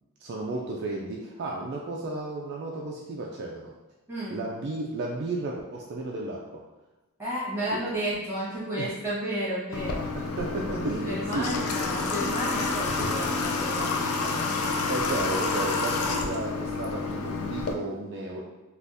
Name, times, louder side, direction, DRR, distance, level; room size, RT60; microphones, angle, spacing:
voice 1, 0.2-3.7 4.3-6.6 7.7-7.8 8.8-8.9 10.2-11.6 14.9-18.4, right 2 dB, 50° right, -1 dB, 0.3 m, -33 dB
voice 2, 7.2-10.1 11.0-14.8, right 1 dB, 10° right, -9 dB, 1.4 m, -32 dB
Water / Water tap faucet, 9.7-17.7, left 3 dB, 85° left, 0.4 m, -29 dB
3.5 x 2.4 x 2.6 m, 1.1 s
head